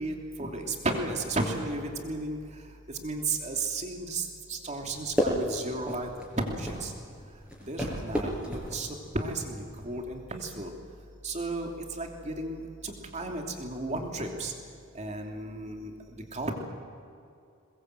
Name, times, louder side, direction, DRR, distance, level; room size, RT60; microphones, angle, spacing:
voice 1, 0.0-2.4 3.0-6.1 6.4-6.9 7.6-10.7 11.2-11.7 12.0-14.5 14.9-16.5, right 2 dB, 35° right, 2 dB, 2.9 m, -34 dB
sound 1, 4.8-10.0, equal, 5° right, 5.3 m, -34 dB
22.0 x 21.0 x 8.0 m, 2.5 s
head